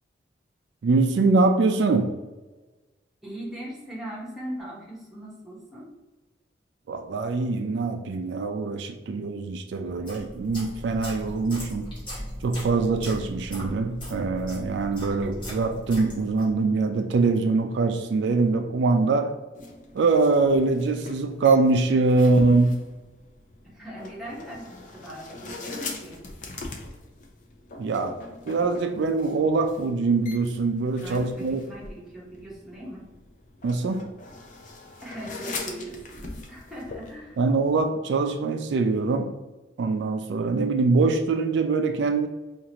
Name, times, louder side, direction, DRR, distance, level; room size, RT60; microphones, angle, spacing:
voice 1, 0.8-2.1 6.9-11.9 12.4-19.3 19.9-22.8 27.8-28.2 28.5-31.7 33.6-34.0 37.4-39.3 39.8-42.3, right 3 dB, 75° right, 6 dB, 0.3 m, -23 dB
voice 2, 3.2-5.9 23.7-26.2 31.0-33.0 35.0-37.4, right 1 dB, ahead, -5 dB, 1.1 m, -39 dB
sound 1, 9.9-16.6, equal, 25° left, 1.3 m, -38 dB
sound 2, 19.5-37.8, left 3 dB, 45° left, 0.6 m, -41 dB
4.8 x 2.5 x 2.9 m, 1.2 s
head